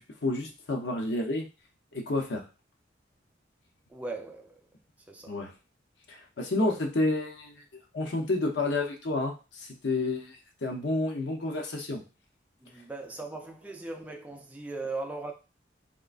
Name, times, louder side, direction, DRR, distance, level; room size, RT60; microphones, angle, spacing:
voice 1, 0.0-1.5 1.9-2.4 5.3-5.5 6.1-12.0, left 2 dB, 70° left, 0.7 m, -30 dB
voice 2, 3.9-4.6 5.1-5.4 6.6-6.8 12.6-15.3, right 3 dB, 10° right, 0.4 m, -39 dB
3.7 x 3.1 x 2.4 m
head